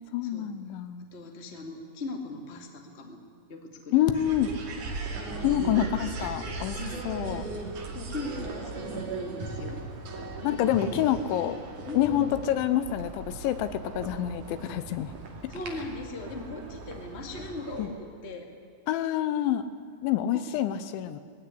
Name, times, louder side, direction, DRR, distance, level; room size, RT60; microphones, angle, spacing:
voice 1, 0.1-1.0 3.9-4.5 5.4-6.8 7.0-7.5 10.4-11.6 11.9-15.1 17.8-17.9 18.9-19.7 20.0-21.2, left 11 dB, 85° left, 12 dB, 3.3 m, -27 dB
voice 2, 1.1-3.2 3.5-4.1 6.7-7.1 7.9-9.9 10.1-11.1 11.9-12.5 15.5-18.5 20.3-20.5, left 2 dB, 25° left, 3 dB, 1.3 m, -39 dB
sound 1, 4.1-17.9, right 3 dB, 50° right, 3.5 m, -38 dB
20.5 x 16.5 x 9.8 m, 2.3 s
omnidirectional pair, 5.3 m